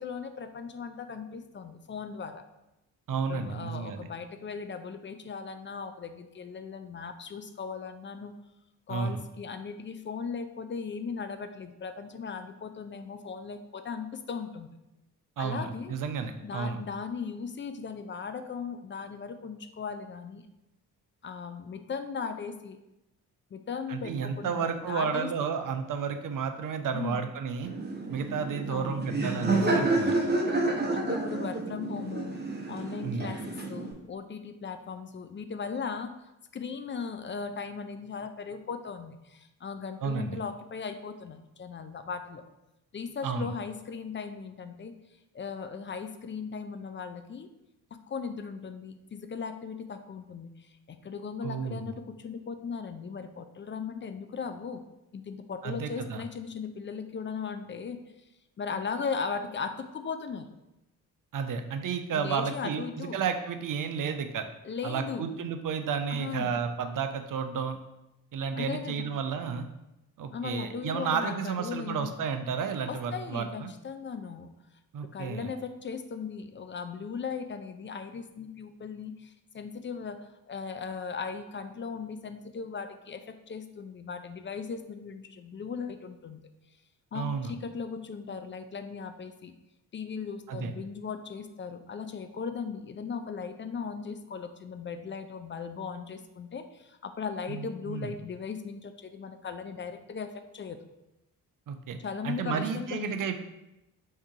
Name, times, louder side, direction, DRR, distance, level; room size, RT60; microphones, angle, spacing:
voice 1, 0.0-2.4 3.3-8.3 8.9-14.7 15.4-16.0 16.4-20.5 21.2-22.8 23.5-25.3 26.9-27.2 28.7-29.0 30.9-32.3 32.7-36.1 36.5-42.4 42.9-44.9 45.3-47.5 48.1-54.8 55.1-58.0 58.6-60.5 62.1-63.2 64.6-65.3 66.1-66.5 68.6-69.1 70.3-72.1 72.9-74.5 75.0-86.4 87.1-89.5 89.9-100.8 102.0-103.2, left 5 dB, 25° left, 8 dB, 0.4 m, -38 dB
voice 2, 3.1-4.1 8.9-9.2 15.4-16.8 23.9-27.7 28.1-30.2 33.0-33.3 40.0-40.4 43.2-43.5 51.4-51.9 55.6-56.2 61.3-64.4 64.8-67.8 68.3-69.7 70.2-73.7 74.9-75.5 87.1-87.6 90.5-90.7 97.5-98.1 101.7-102.0 102.2-103.4, right 6 dB, 45° right, 7 dB, 0.6 m, -32 dB
Laughter, 27.6-33.9, right 2 dB, 20° right, 0.9 m, -29 dB
3.5 x 2.8 x 4.5 m, 0.92 s
hypercardioid pair, 40°, 47 cm